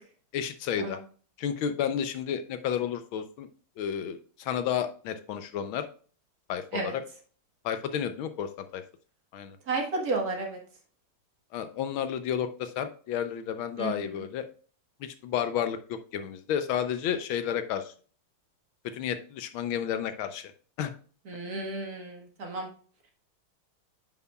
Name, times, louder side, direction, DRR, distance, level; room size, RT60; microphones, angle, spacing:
voice 1, 0.3-1.0 1.4-3.5 3.8-5.9 6.5-7.0 7.6-8.8 9.3-9.6 11.5-14.4 15.0-17.9 18.9-20.5 20.8-20.9, left 9 dB, 75° left, 10 dB, 1.5 m, -31 dB
voice 2, 9.7-10.6 13.8-14.1 21.3-22.7, right 3 dB, 45° right, 1 dB, 1.8 m, -32 dB
9.2 x 5.9 x 2.3 m, 0.41 s
omnidirectional pair, 2.4 m